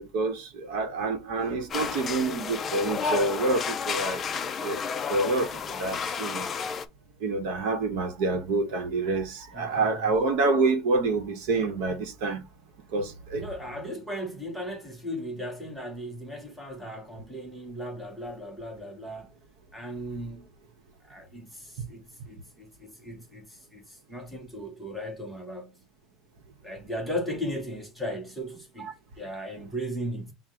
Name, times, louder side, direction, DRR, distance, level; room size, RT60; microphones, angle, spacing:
voice 1, 0.0-4.2 4.6-4.8 5.1-6.5 7.2-12.5 12.9-13.5 28.8-28.9, right 3 dB, 55° right, 0.8 m, -27 dB
sound 1, 1.7-6.8, left 6 dB, 20° left, 0.4 m, -31 dB
voice 2, 9.5-10.3 13.3-19.3 19.7-20.5 21.0-25.8 26.6-30.3, equal, ahead, 0.8 m, -37 dB
5.9 x 2.0 x 3.6 m
cardioid pair, 175°, 0 cm